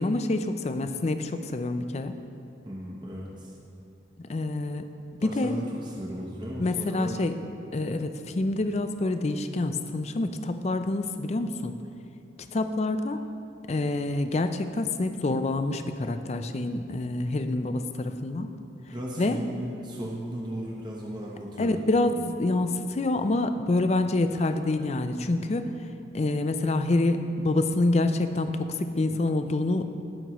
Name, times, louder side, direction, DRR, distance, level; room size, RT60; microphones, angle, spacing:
voice 1, 0.0-2.1 4.3-4.8 5.2-5.6 6.6-7.4 7.7-11.8 12.5-13.2 13.7-18.5 19.2-19.4 21.6-25.7 26.1-29.9, left 2 dB, 35° left, 8 dB, 0.4 m, -27 dB
voice 2, 2.6-3.5 5.2-7.2 18.9-21.7, equal, 25° right, -4 dB, 0.8 m, -36 dB
18.0 x 6.1 x 3.1 m, 2.7 s
head